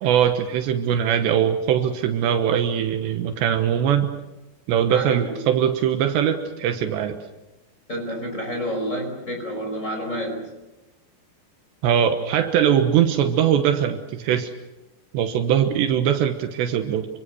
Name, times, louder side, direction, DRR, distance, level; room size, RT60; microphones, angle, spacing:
voice 1, 0.0-4.1 4.7-7.2 11.8-14.5 15.1-17.1, right 9 dB, 80° right, 6 dB, 3.4 m, -21 dB
voice 2, 4.9-5.4 7.9-10.5, equal, 15° left, 3 dB, 5.6 m, -29 dB
27.0 x 25.5 x 6.4 m, 1.0 s
omnidirectional pair, 5.0 m